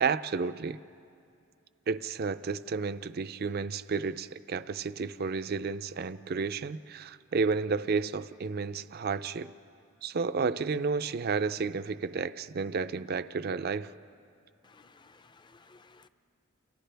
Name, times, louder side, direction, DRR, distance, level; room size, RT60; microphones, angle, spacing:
voice 1, 0.0-0.8 1.9-9.5 10.0-13.9, right 5 dB, 50° right, 13 dB, 0.5 m, -31 dB
voice 2, 14.6-16.1, left 4 dB, 20° left, 11 dB, 0.5 m, -58 dB
29.5 x 29.5 x 3.4 m, 2.5 s
head